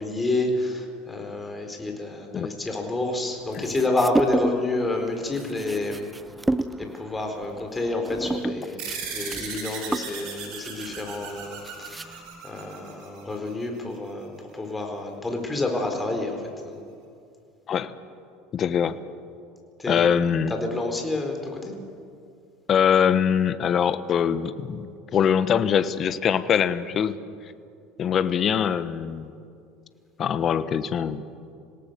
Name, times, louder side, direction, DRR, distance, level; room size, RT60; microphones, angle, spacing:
voice 1, 0.0-6.1 6.8-8.9 9.1-16.8 19.8-20.1 20.5-21.7, left 2 dB, 15° left, 3 dB, 4.3 m, -29 dB
sound 1, 3.5-4.8 5.1-12.4, right 2 dB, 10° right, 0.8 m, -31 dB
sound 2, 8.8-13.7, right 6 dB, 65° right, 5.0 m, -37 dB
voice 2, 18.5-19.0 19.9-20.5 22.7-27.2 28.0-29.3 30.2-31.2, left 8 dB, 40° left, 14 dB, 1.0 m, -23 dB
26.5 x 17.5 x 6.8 m, 2.4 s
hypercardioid pair, 80°, 0 cm